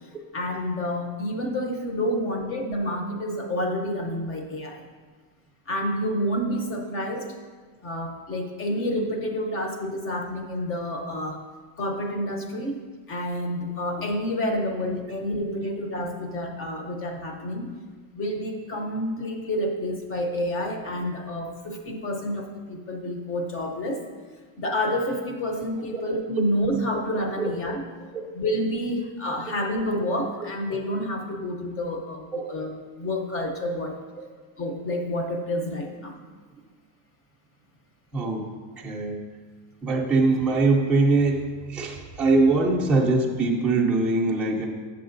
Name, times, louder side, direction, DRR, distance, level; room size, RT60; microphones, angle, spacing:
voice 1, 0.3-4.8 5.7-7.3 7.8-11.4 11.8-12.8 13.1-17.7 18.1-24.1 24.6-27.8 28.3-32.7 33.0-34.0 34.6-36.2, left 1 dB, 25° left, 4 dB, 0.8 m, -29 dB
voice 2, 38.1-38.5 38.8-39.2 39.8-44.7, right 3 dB, ahead, -4 dB, 0.5 m, -22 dB
9.1 x 6.9 x 2.6 m, 1.5 s
cardioid pair, 155°, 50 cm